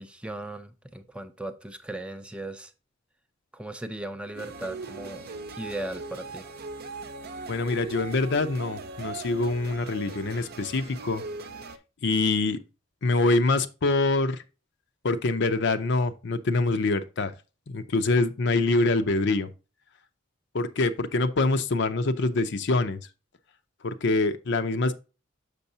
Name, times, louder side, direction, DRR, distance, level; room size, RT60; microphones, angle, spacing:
voice 1, 0.0-2.7 3.5-5.3 5.6-6.5, right 1 dB, 5° right, 0.5 m, -37 dB
sound 1, 4.3-11.8, right 3 dB, 55° right, 0.7 m, -40 dB
voice 2, 7.5-11.2 12.0-12.6 13.0-14.4 15.0-17.3 17.7-19.5 20.5-23.0 23.8-24.9, left 3 dB, 65° left, 0.6 m, -25 dB
6.7 x 6.2 x 2.8 m
head